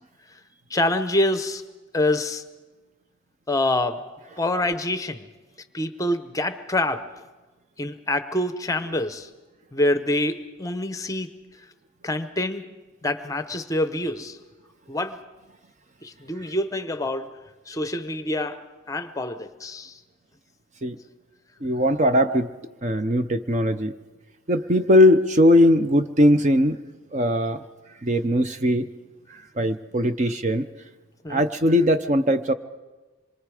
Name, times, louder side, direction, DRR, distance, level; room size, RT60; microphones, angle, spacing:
voice 1, 0.7-1.6 1.9-2.4 3.5-4.0 4.4-5.3 5.7-7.0 7.8-9.3 9.7-11.3 12.0-12.6 13.0-14.4 14.9-15.2 16.0-17.3 17.7-18.6 18.9-20.0 31.2-31.4, left 1 dB, 15° left, 11 dB, 0.8 m, -26 dB
voice 2, 21.6-22.5 22.8-23.9 24.5-26.8 27.1-27.6 28.0-28.9 29.3-30.6 31.3-32.5, left 1 dB, 35° right, 10 dB, 0.6 m, -20 dB
26.0 x 23.0 x 4.9 m, 1.2 s
head